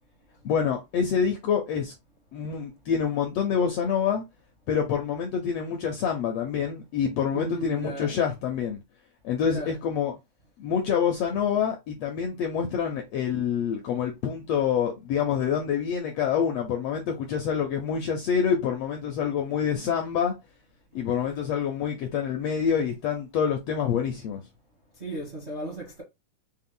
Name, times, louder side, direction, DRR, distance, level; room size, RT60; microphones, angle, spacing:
voice 1, 0.4-1.9 2.3-4.2 4.7-8.8 9.2-10.1 10.6-20.3 20.9-24.4, left 7 dB, 80° left, 1.4 m, -26 dB
voice 2, 7.3-8.2 9.5-9.8 25.0-26.0, right 1 dB, 50° right, 0.8 m, -35 dB
5.3 x 2.1 x 3.7 m
omnidirectional pair, 3.6 m